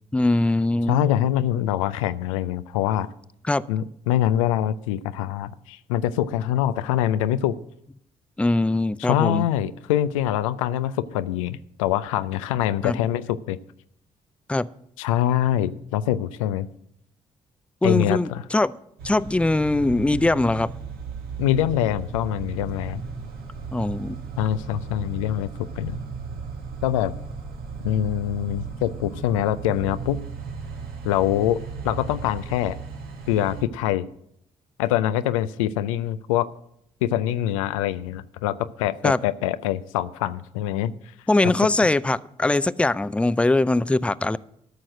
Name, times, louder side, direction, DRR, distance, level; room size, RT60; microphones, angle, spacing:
voice 1, 0.1-1.1 3.4-3.6 8.4-9.5 12.8-13.0 14.5-14.7 17.8-18.7 19.0-20.7 23.7-24.2 39.0-39.2 41.3-44.4, left 2 dB, 5° left, 18 dB, 0.4 m, -21 dB
voice 2, 0.9-3.1 3.7-7.6 9.0-13.6 15.0-16.7 17.8-18.4 21.4-23.0 24.4-26.0 26.8-27.1 27.8-30.2 31.0-32.8 33.3-34.1 34.8-36.5 37.0-40.9, left 12 dB, 85° left, 14 dB, 0.4 m, -24 dB
sound 1, 19.0-33.6, right 5 dB, 70° right, 1.6 m, -36 dB
13.0 x 6.2 x 6.3 m, 0.75 s
hypercardioid pair, 40°, 16 cm